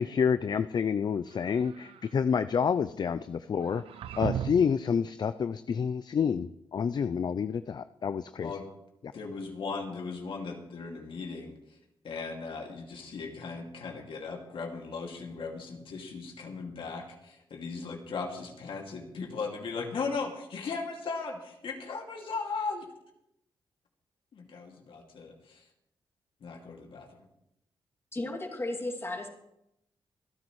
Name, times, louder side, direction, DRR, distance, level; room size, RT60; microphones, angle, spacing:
voice 1, 0.0-3.8 4.2-8.5, left 6 dB, 50° left, 13 dB, 0.4 m, -28 dB
sound 1, 1.3-2.2 3.6-4.8, right 9 dB, 85° right, 0.5 m, -37 dB
voice 2, 9.1-11.5 12.0-22.9 24.3-25.6 26.4-27.1, left 4 dB, 65° left, 2 dB, 2.3 m, -37 dB
voice 3, 28.1-29.3, left 2 dB, 25° left, 1 dB, 2.6 m, -34 dB
27.0 x 9.5 x 3.2 m, 0.83 s
cardioid pair, 75°, 9 cm